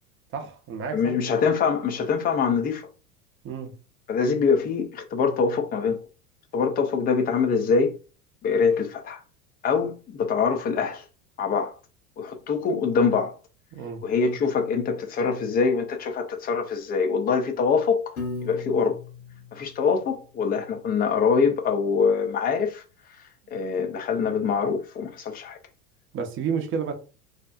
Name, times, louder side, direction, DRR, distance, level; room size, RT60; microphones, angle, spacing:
voice 1, 0.3-1.1 3.4-3.8 13.7-14.0 19.4-19.5 26.1-26.9, right 6 dB, 30° right, 0.6 m, -31 dB
voice 2, 0.9-2.9 4.1-6.0 6.5-7.9 8.4-9.2 9.6-11.0 11.4-11.7 12.2-13.3 14.0-18.2 18.4-19.0 19.5-22.8 23.5-25.6, left 5 dB, 20° left, 0.4 m, -24 dB
Piano, 18.2-20.4, left 3 dB, 80° left, 1.1 m, -37 dB
2.7 x 2.0 x 2.3 m
hypercardioid pair, 85°, 43 cm